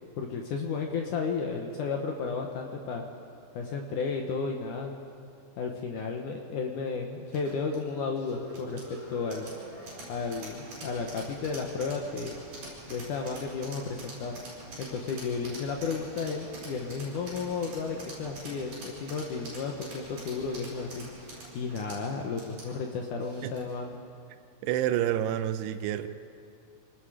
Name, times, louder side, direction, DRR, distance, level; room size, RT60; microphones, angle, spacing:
voice 1, 0.2-3.0 3.5-4.9 5.6-9.5 10.1-12.4 12.9-14.3 14.8-21.0 21.5-24.0, left 5 dB, 90° left, 2 dB, 1.7 m, -33 dB
sound 1, 7.3-23.9, right 2 dB, 45° right, 7.8 m, -45 dB
voice 2, 24.6-26.1, right 11 dB, 75° right, 10 dB, 2.5 m, -28 dB
28.0 x 19.5 x 5.0 m, 2.5 s
omnidirectional pair, 5.5 m